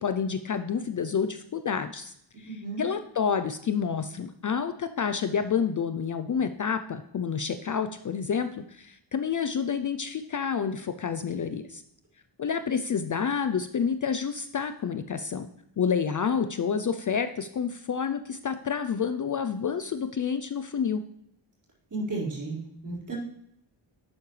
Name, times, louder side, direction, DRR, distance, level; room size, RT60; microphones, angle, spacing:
voice 1, 0.0-11.8 12.4-15.5 15.8-21.0, left 6 dB, 45° left, 9 dB, 0.4 m, -29 dB
voice 2, 2.4-2.8 21.9-23.2, right 3 dB, 40° right, -6 dB, 4.6 m, -33 dB
11.5 x 8.4 x 3.2 m, 0.75 s
wide cardioid pair, 170°, 47 cm